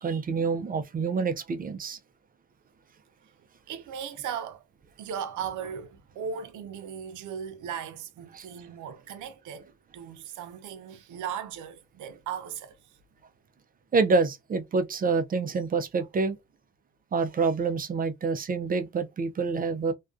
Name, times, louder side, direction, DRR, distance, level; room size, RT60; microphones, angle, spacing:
voice 1, 0.0-2.0 8.3-8.4 13.9-16.4 17.1-19.9, right 4 dB, 30° right, 0.4 m, -27 dB
voice 2, 3.7-4.6 5.0-13.0, right 8 dB, 80° right, 0.6 m, -37 dB
2.3 x 2.3 x 2.4 m
cardioid pair, 90°, 30 cm